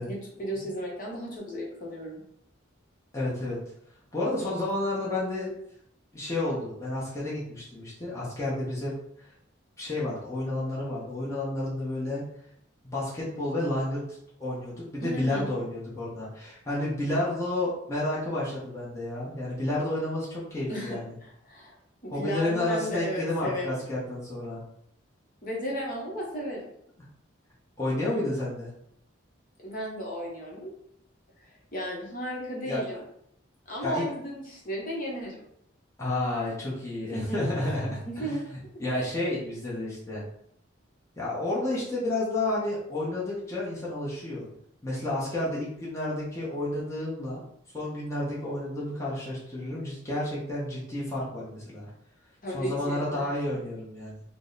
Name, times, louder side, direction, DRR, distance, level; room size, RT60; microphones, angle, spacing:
voice 1, 0.0-2.2 15.0-15.5 20.7-21.8 22.0-23.8 25.4-26.6 29.6-30.7 31.4-33.0 33.7-35.4 37.1-37.4 37.8-38.4 38.9-39.0 52.4-53.3, equal, 40° left, -3 dB, 0.9 m, -34 dB
voice 2, 3.1-3.6 4.1-5.5 6.1-8.9 9.8-12.2 12.8-14.0 14.4-21.0 22.1-24.6 27.8-28.7 32.7-32.8 33.8-34.0 36.0-40.2 41.2-44.5 44.8-47.4 47.7-51.9 52.5-54.2, left 1 dB, 15° left, -8 dB, 0.8 m, -31 dB
3.6 x 2.1 x 3.9 m, 0.73 s
head